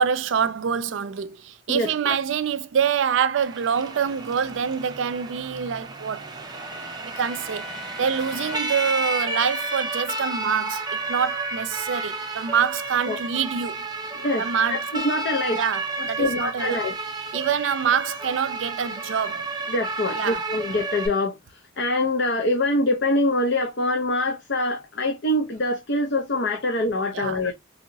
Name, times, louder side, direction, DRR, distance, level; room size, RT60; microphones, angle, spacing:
voice 1, 0.0-6.3 7.0-7.7 8.0-13.8 14.4-14.9 15.5-16.8 17.3-19.5 20.1-20.4 27.1-27.4, right 7 dB, 80° right, 0.4 m, -25 dB
voice 2, 1.7-2.1 13.1-13.2 14.2-15.6 16.0-16.9 19.7-21.4 21.8-27.5, left 1 dB, 65° left, 0.6 m, -24 dB
Siren, 3.4-21.1, right 3 dB, 20° right, 0.5 m, -32 dB
Trumpet, 6.5-13.0, left 3 dB, 5° left, 0.8 m, -41 dB
3.0 x 2.9 x 2.6 m
head